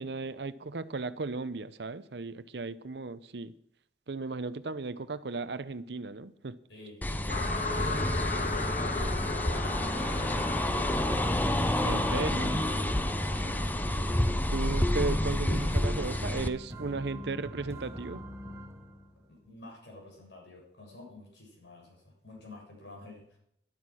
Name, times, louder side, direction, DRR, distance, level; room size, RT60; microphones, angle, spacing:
voice 1, 0.0-3.5 4.1-6.6 11.8-12.6 14.5-18.2, right 3 dB, 70° right, 0.7 m, -35 dB
voice 2, 6.7-9.9 13.3-14.4 19.3-23.4, left 2 dB, 80° left, 7.0 m, -50 dB
sound 1, 7.0-16.5, left 1 dB, 10° left, 0.6 m, -29 dB
sound 2, 7.3-16.5, left 3 dB, 45° left, 1.7 m, -37 dB
sound 3, 12.7-19.5, equal, 15° right, 1.4 m, -46 dB
12.5 x 11.5 x 6.3 m
head